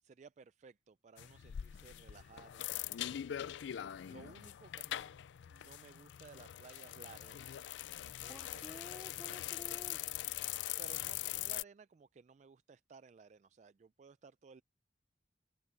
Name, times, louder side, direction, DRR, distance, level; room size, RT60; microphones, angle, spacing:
voice 1, 0.0-5.2 5.5-7.6 8.0-8.6 9.0-9.5 10.8-14.6, right 5 dB, 40° right, 0.3 m, -58 dB
sound 1, 1.2-11.6, left 12 dB, 75° left, 0.3 m, -42 dB
voice 2, 8.3-10.1, equal, 5° right, 3.3 m, -53 dB
open air
head